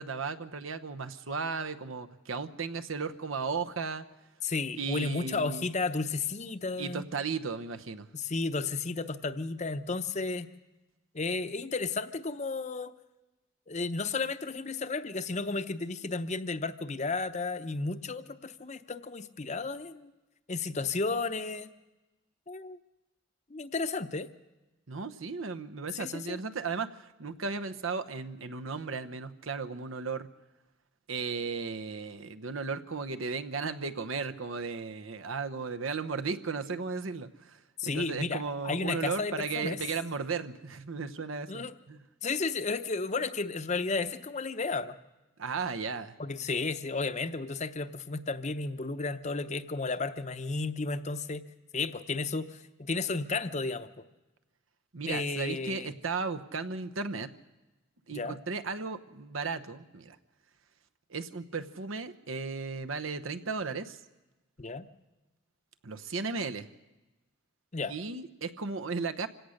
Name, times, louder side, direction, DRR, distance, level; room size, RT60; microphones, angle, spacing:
voice 1, 0.0-4.0 4.8-5.7 6.8-8.1 24.9-30.3 31.1-42.0 45.4-46.2 54.9-57.3 58.1-60.2 61.1-64.0 65.8-66.7 67.9-69.3, right 4 dB, 80° right, 9 dB, 1.0 m, -35 dB
voice 2, 4.4-7.0 8.1-10.5 11.1-12.9 13.7-20.1 20.5-21.7 22.5-22.8 23.5-24.3 25.9-26.4 37.8-39.8 41.5-41.7 42.2-45.0 46.2-51.4 51.7-53.9 55.1-55.9 58.1-58.4 64.6-64.9 67.7-67.9, left 3 dB, 35° left, 10 dB, 0.7 m, -33 dB
26.0 x 17.0 x 6.5 m, 1.1 s
head